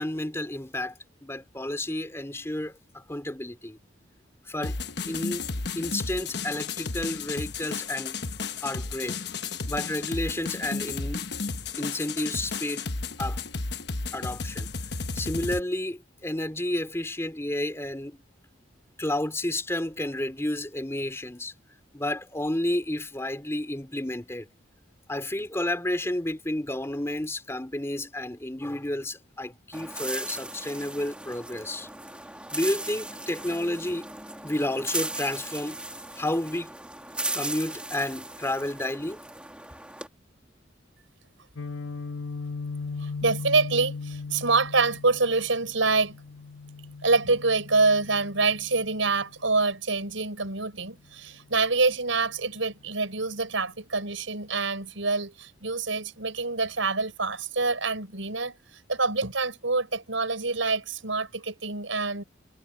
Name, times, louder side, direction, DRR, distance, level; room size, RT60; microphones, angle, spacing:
voice 1, 0.0-3.8 4.4-4.8 5.0-5.4 5.7-8.2 8.6-9.2 9.7-11.3 11.8-12.9 13.2-13.4 14.1-14.7 15.1-18.2 19.0-21.5 21.9-24.5 25.1-31.9 32.5-34.1 34.4-35.8 36.2-36.7 37.3-39.2, left 1 dB, 15° left, 2.8 m, -31 dB
sound 1, 4.6-15.6, left 4 dB, 60° left, 1.2 m, -33 dB
sound 2, 29.7-40.1, right 2 dB, 5° right, 2.0 m, -37 dB
Guitar, 41.6-49.4, left 4 dB, 80° left, 1.1 m, -38 dB
voice 2, 43.0-46.2 47.0-58.5 58.9-62.2, right 3 dB, 90° right, 6.0 m, -26 dB
head